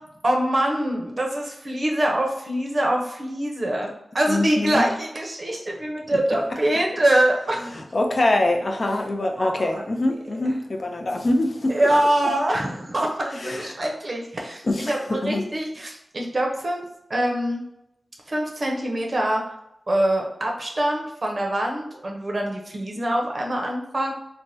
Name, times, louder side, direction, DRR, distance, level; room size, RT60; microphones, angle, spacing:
voice 1, 0.2-3.9 4.1-7.8 9.4-9.8 11.7-16.8 17.1-17.6 18.3-19.4 19.9-24.1, right 1 dB, 50° right, 0 dB, 0.6 m, -24 dB
voice 2, 4.3-4.8 7.9-11.8 13.4-13.8 14.7-15.4, left 1 dB, 50° left, 3 dB, 0.4 m, -24 dB
3.3 x 2.1 x 2.6 m, 0.82 s
cardioid pair, 55°, 0 cm